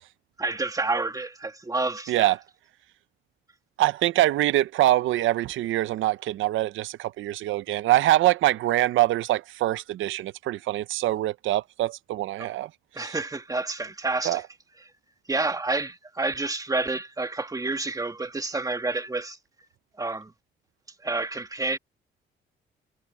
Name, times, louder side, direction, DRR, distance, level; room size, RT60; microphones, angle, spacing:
voice 1, 0.4-2.3 12.4-12.5 12.9-14.4 15.3-19.4 20.0-20.3 21.0-21.8, right 3 dB, 15° right, 2.0 m, -29 dB
voice 2, 3.8-12.7 14.2-14.4, right 15 dB, 85° right, 0.8 m, -24 dB
cardioid pair, 90°, 20 cm